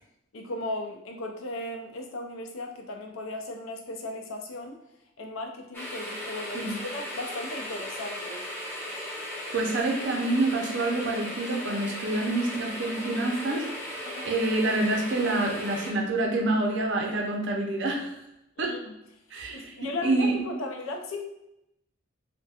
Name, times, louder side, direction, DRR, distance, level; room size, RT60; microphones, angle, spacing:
voice 1, 0.3-4.8 5.2-8.5 14.0-14.3 18.6-18.9 19.3-21.2, left 2 dB, 85° left, 3 dB, 0.4 m, -36 dB
sound 1, 5.7-15.9, left 1 dB, 10° left, 0.4 m, -37 dB
voice 2, 9.5-13.7 14.0-18.2 18.6-18.8 19.3-20.4, right 2 dB, 60° right, 2 dB, 0.5 m, -27 dB
2.3 x 2.1 x 2.7 m, 0.83 s
head